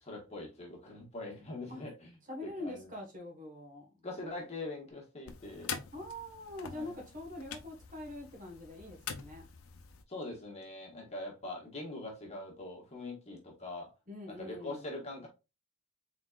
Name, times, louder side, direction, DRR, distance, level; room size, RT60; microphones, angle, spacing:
voice 1, 0.0-2.1 2.4-2.9 4.0-5.9 6.7-7.0 10.1-13.9 14.4-15.3, left 2 dB, 30° left, 1.4 m, -43 dB
voice 2, 2.2-4.1 5.9-9.5 14.1-14.9, left 1 dB, 40° right, 1.3 m, -44 dB
sound 1, 5.3-10.0, left 7 dB, 80° left, 0.6 m, -45 dB
4.1 x 4.1 x 2.4 m
head